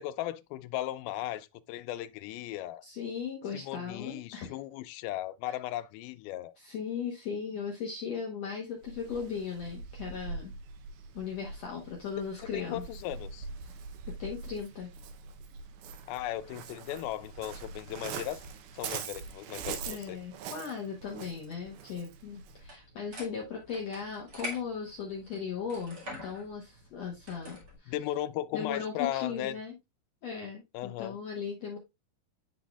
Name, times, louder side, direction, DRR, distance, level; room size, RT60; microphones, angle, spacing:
voice 1, 0.0-2.8 3.5-6.5 12.5-13.5 16.1-18.4 18.7-20.2 27.9-29.6 30.7-31.2, left 13 dB, 85° left, 2.4 m, -36 dB
voice 2, 2.8-4.5 5.4-5.5 6.6-10.5 11.1-12.8 14.2-14.9 19.9-27.9 28.5-29.7 30.2-31.8, left 6 dB, 65° left, 1.7 m, -37 dB
Waves surf, 8.8-22.7, right 5 dB, 75° right, 2.0 m, -43 dB
sound 1, 22.6-27.8, left 1 dB, 35° right, 1.6 m, -46 dB
10.0 x 4.2 x 2.3 m
omnidirectional pair, 4.3 m